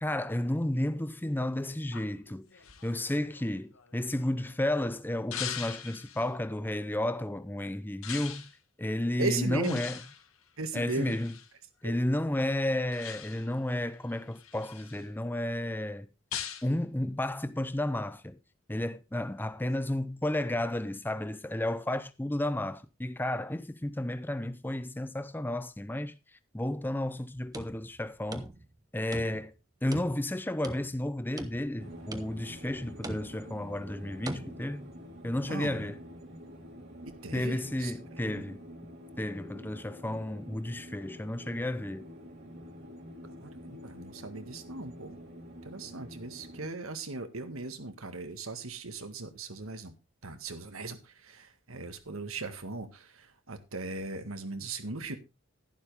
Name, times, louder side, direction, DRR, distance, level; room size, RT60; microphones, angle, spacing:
voice 1, 0.0-2.5 2.8-8.5 8.8-10.0 10.7-11.4 11.8-16.1 16.6-18.4 18.7-26.2 26.5-28.5 28.9-29.5 29.8-34.9 35.2-36.0 37.3-38.6 39.2-42.1, left 1 dB, 10° left, 0.6 m, -32 dB
sound 1, 1.9-4.6 5.3-6.3 8.0-8.6 9.6-11.5 12.9-13.6 14.1-15.1 16.3-16.7, left 9 dB, 80° left, 1.7 m, -42 dB
voice 2, 9.2-9.8 10.6-11.2 11.8-12.0 29.3-29.4 35.5-35.9 37.2-37.9 43.4-45.1 45.6-49.9 50.2-55.2, right 3 dB, 80° right, 1.8 m, -38 dB
sound 2, 27.3-28.8 29.1-29.6 29.9-31.0 31.4-31.8 32.1-32.6 33.0-33.6 34.3-34.5, right 1 dB, 15° right, 1.0 m, -42 dB
sound 3, 31.8-46.7, equal, 55° right, 2.6 m, -47 dB
11.5 x 11.5 x 3.3 m
head